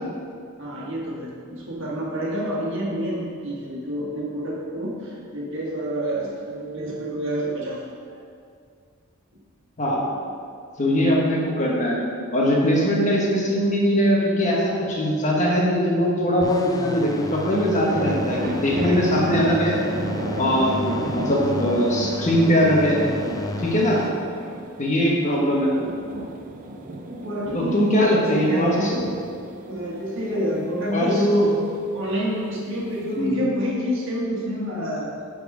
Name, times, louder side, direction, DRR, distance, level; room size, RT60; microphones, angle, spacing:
voice 1, 0.6-8.2 27.1-29.1 29.7-35.1, equal, 65° right, -4 dB, 1.5 m, -27 dB
voice 2, 10.8-12.0 12.3-19.8 20.4-23.0 23.6-24.0 24.8-25.7 27.5-28.9 30.9-31.1 33.2-33.4, equal, 35° left, -3 dB, 1.3 m, -21 dB
sound 1, 16.4-24.1, left 2 dB, 15° left, 0.3 m, -33 dB
sound 2, 16.9-33.3, right 1 dB, 40° right, 0.5 m, -33 dB
7.9 x 4.1 x 4.9 m, 2.2 s
head